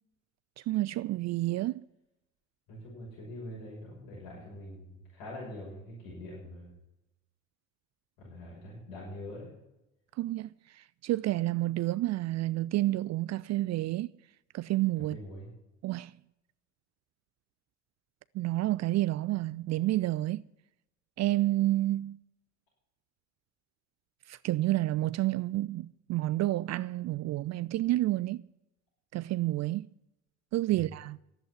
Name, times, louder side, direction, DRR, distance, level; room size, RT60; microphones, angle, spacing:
voice 1, 0.7-1.8 10.2-10.5 10.8-14.1 14.5-15.2 15.8-16.1 18.3-20.4 21.2-22.2 24.3-28.4 29.1-29.8 30.5-31.2, right 16 dB, 50° right, 0.4 m, -29 dB
voice 2, 2.7-6.7 8.2-9.5 15.1-15.5 30.7-30.8, left 1 dB, 75° left, 6.2 m, -44 dB
11.0 x 8.1 x 9.5 m
hypercardioid pair, 65°, 36 cm